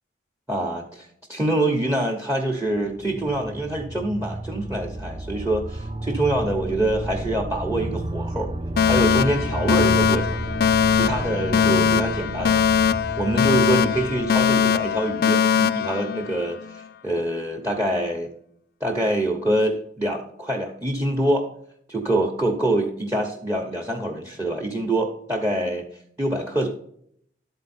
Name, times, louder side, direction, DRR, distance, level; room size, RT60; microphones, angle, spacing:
voice 1, 0.5-8.5 8.8-10.4 10.9-12.6 13.2-18.3 18.8-21.5 21.9-25.8 26.2-26.7, right 1 dB, 10° right, 2 dB, 0.9 m, -25 dB
sound 1, 2.7-15.5, right 1 dB, 30° right, 0.5 m, -31 dB
Alarm, 8.8-16.8, left 7 dB, 55° left, 0.3 m, -21 dB
12.0 x 4.3 x 4.2 m, 0.67 s
head